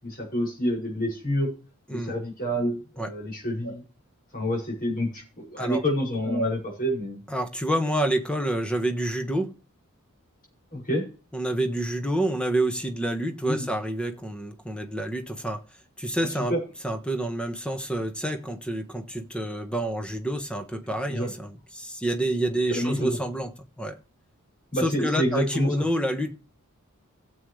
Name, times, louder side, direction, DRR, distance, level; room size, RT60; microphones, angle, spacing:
voice 1, 0.0-1.5 1.9-3.8 4.3-7.2 10.7-11.1 13.4-13.7 16.2-16.6 21.1-21.3 22.7-23.2 24.7-25.9, equal, 40° left, 6.5 m, -28 dB
voice 2, 7.3-9.5 11.3-15.6 16.0-16.5 16.8-24.0 24.8-26.3, right 1 dB, 5° left, 1.2 m, -28 dB
17.0 x 7.9 x 3.3 m
head